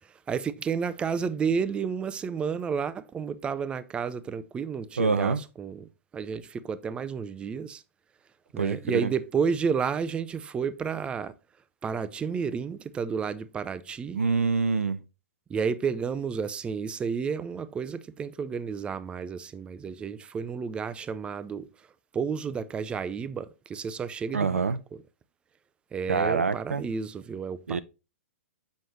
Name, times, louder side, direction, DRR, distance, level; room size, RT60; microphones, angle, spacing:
voice 1, 0.3-5.9 6.1-7.8 8.5-11.3 11.8-14.2 15.5-21.7 22.1-24.7 25.9-27.8, right 6 dB, 15° right, 0.5 m, -31 dB
voice 2, 5.0-5.4 8.6-9.1 14.1-15.0 24.3-24.8 26.1-26.8 27.7-27.8, right 4 dB, 80° right, 0.7 m, -26 dB
7.7 x 6.3 x 3.0 m
figure-of-eight pair, 115°, 7 cm